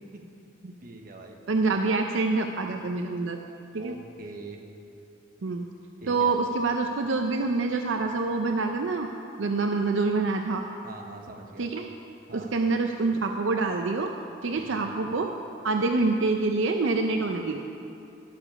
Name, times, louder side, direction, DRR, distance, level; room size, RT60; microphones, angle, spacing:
voice 1, 0.8-1.4 3.8-4.6 6.0-6.3 10.8-11.7 12.3-12.5 14.6-14.8, right 2 dB, 50° right, 2 dB, 1.1 m, -43 dB
voice 2, 1.5-3.4 3.7-3.9 5.4-5.6 6.1-9.1 9.4-10.6 11.6-11.9 12.3-14.1 14.4-15.3 15.6-17.6, right 3 dB, 75° right, 4 dB, 0.5 m, -26 dB
12.0 x 6.9 x 5.9 m, 2.7 s
head